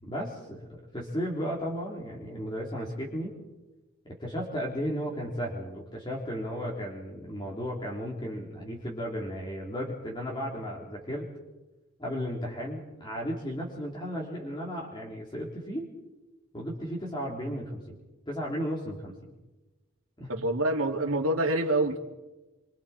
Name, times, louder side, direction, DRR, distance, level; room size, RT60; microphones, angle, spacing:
voice 1, 0.0-3.3 4.0-11.3 12.0-15.9 16.5-18.0 18.3-19.1 20.2-20.3, equal, 20° left, -2 dB, 3.7 m, -34 dB
voice 2, 20.3-22.1, right 1 dB, 70° right, 1 dB, 2.9 m, -26 dB
28.5 x 25.5 x 4.5 m, 1.1 s
head